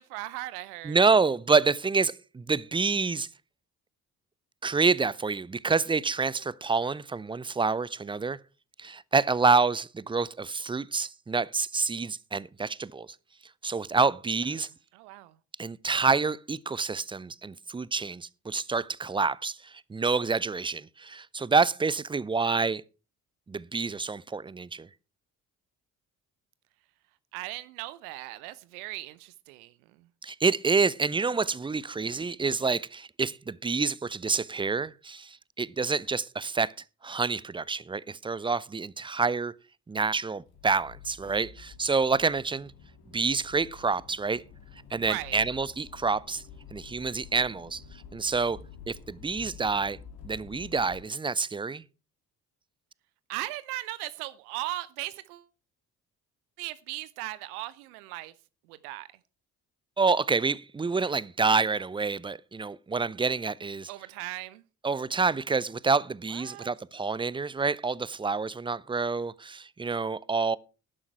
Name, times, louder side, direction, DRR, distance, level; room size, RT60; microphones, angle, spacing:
voice 1, 0.0-1.0 14.6-15.3 27.3-30.1 45.0-45.4 53.3-55.4 56.6-58.3 58.7-59.1 63.9-64.6 66.3-66.7, right 17 dB, 70° right, 0.8 m, -38 dB
voice 2, 0.8-3.3 4.6-8.4 8.8-13.1 13.6-14.7 15.6-22.8 23.5-24.9 30.2-36.7 37.0-39.5 39.9-42.7 43.1-44.4 44.9-46.4 46.7-47.8 48.1-48.6 48.9-50.0 50.2-51.8 60.0-63.9 64.8-70.6, right 4 dB, 10° right, 0.5 m, -27 dB
Accelerating revving vroom, 40.5-51.0, left 7 dB, 55° left, 2.8 m, -49 dB
11.5 x 11.0 x 4.5 m
figure-of-eight pair, 45°, 46 cm